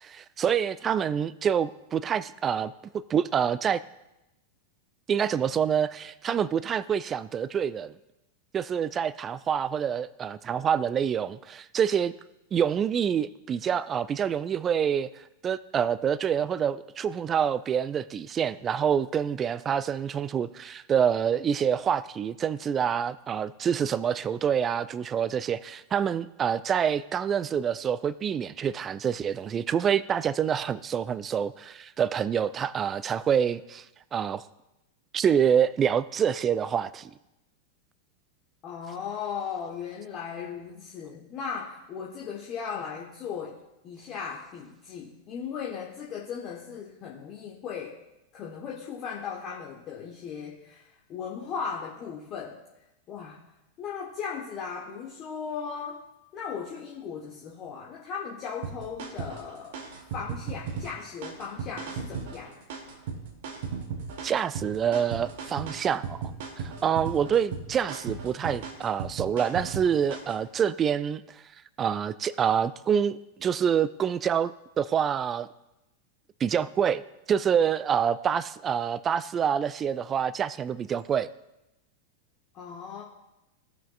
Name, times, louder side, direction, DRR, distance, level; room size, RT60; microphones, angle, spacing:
voice 1, 0.0-2.7 3.1-3.8 5.1-7.9 8.5-12.2 12.5-15.1 15.4-33.8 34.1-34.4 35.1-37.1 64.2-66.2 66.6-71.2 71.8-75.5 76.4-77.0 77.3-81.3, right 8 dB, 25° right, 18 dB, 0.3 m, -26 dB
voice 2, 38.6-43.6 43.8-48.0 48.3-52.6 53.1-53.4 53.8-56.0 56.3-59.8 60.1-62.6 82.5-83.0, left 6 dB, 35° left, -3 dB, 1.1 m, -37 dB
sound 1, 58.6-70.4, right 5 dB, 50° right, 1.0 m, -37 dB
16.0 x 5.8 x 2.4 m, 0.94 s
figure-of-eight pair, 90°, 0 cm